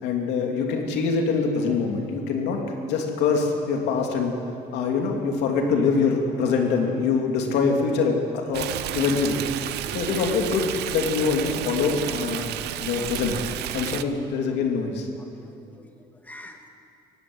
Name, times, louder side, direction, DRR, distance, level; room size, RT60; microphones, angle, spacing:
voice 1, 0.0-2.6 2.9-4.3 4.7-8.7 8.9-9.4 9.9-13.3 13.7-15.1, left 5 dB, 85° left, 2 dB, 2.9 m, -24 dB
Stream, 8.5-14.0, right 13 dB, 80° right, 0.8 m, -31 dB
voice 2, 9.9-10.4 13.0-13.1 13.7-13.8 15.2-15.9 16.2-16.7, left 1 dB, 10° left, 3 dB, 2.4 m, -47 dB
17.5 x 15.5 x 9.8 m, 2.6 s
cardioid pair, 110°, 17 cm